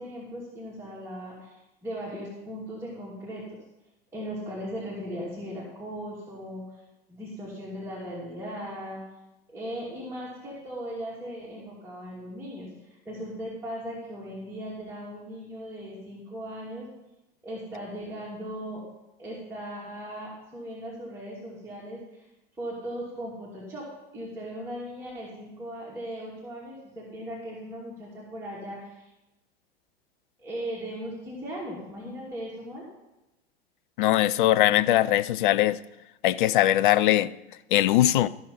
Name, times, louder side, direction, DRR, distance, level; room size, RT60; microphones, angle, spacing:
voice 1, 0.0-1.6 1.8-3.6 4.1-6.8 7.1-9.0 9.5-16.9 17.4-18.8 19.2-22.2 22.6-23.8 24.1-29.1 30.4-32.9, equal, 10° right, -7 dB, 2.7 m, -38 dB
voice 2, 34.0-35.8 36.2-37.3 37.7-38.3, left 14 dB, 55° left, 15 dB, 0.5 m, -21 dB
14.0 x 5.6 x 5.5 m, 0.96 s
figure-of-eight pair, 85°, 31 cm